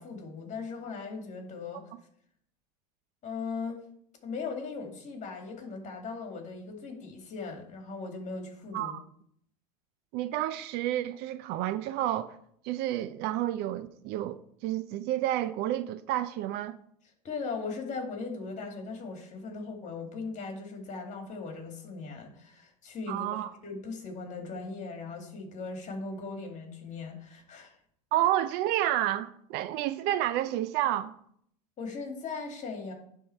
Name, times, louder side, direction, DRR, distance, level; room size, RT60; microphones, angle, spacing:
voice 1, 0.0-1.9 3.2-3.8 4.2-8.9 17.2-27.8 31.8-32.9, left 4 dB, 35° left, 2.2 m, -38 dB
voice 2, 10.1-12.4 12.6-16.8 23.1-23.5 28.1-31.1, right 13 dB, 55° right, 0.5 m, -30 dB
10.5 x 3.7 x 4.4 m
hypercardioid pair, 95°, 20 cm